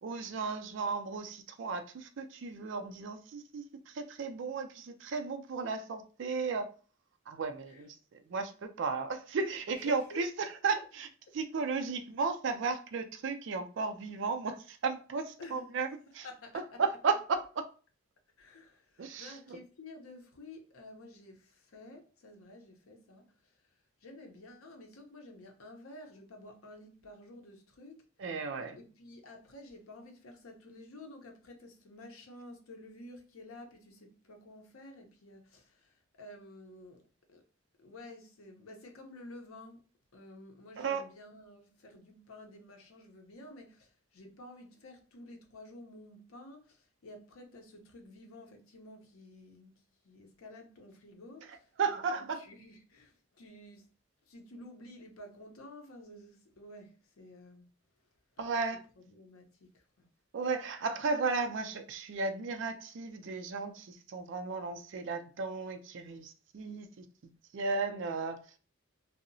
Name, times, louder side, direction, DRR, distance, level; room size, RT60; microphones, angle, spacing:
voice 1, 0.0-6.7 7.3-11.1 11.3-15.9 16.1-16.3 16.8-17.6 19.0-19.6 28.2-28.8 40.8-41.0 51.8-52.4 58.4-58.8 60.3-67.1 67.5-68.4, right 4 dB, 60° right, 0.4 m, -34 dB
voice 2, 9.8-10.2 11.7-11.8 15.4-15.7 16.2-16.8 18.4-28.1 28.8-37.0 37.3-37.5 37.8-39.9 40.1-49.7 50.0-53.9 54.2-57.7 58.4-58.5 59.0-60.1, left 1 dB, 85° left, 0.6 m, -51 dB
2.7 x 2.0 x 2.6 m
head